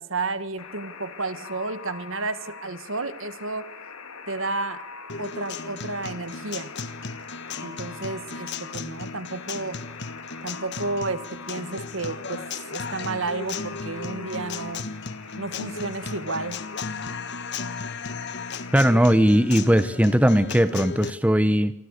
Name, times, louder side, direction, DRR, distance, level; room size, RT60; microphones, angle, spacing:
voice 1, 0.0-3.7 4.3-4.9 5.2-6.7 7.6-9.8 10.4-12.4 12.7-14.9 15.4-16.6, right 3 dB, 65° right, 12 dB, 1.9 m, -32 dB
Alarm, 0.6-19.0, left 5 dB, 85° left, 4.0 m, -42 dB
Guitar, 5.1-21.1, left 4 dB, 50° left, 1.4 m, -35 dB
voice 2, 18.7-21.7, equal, 5° right, 12 dB, 0.9 m, -19 dB
28.0 x 25.0 x 6.7 m, 0.77 s
head